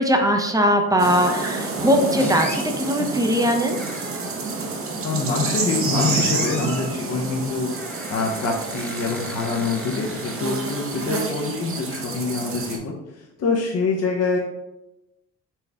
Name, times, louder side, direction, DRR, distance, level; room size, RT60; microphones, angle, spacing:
voice 1, 0.0-3.8, equal, 10° right, 3 dB, 0.6 m, -20 dB
sound 1, 1.0-12.8, right 3 dB, 45° right, 0.9 m, -28 dB
sound 2, 2.2-2.7 3.7-4.5 5.9-6.9 7.7-11.1, equal, 5° left, 1.0 m, -38 dB
voice 2, 5.0-12.9 13.4-14.4, left 4 dB, 55° left, -2 dB, 0.8 m, -25 dB
4.4 x 3.2 x 3.4 m, 0.95 s
cardioid pair, 90°, 30 cm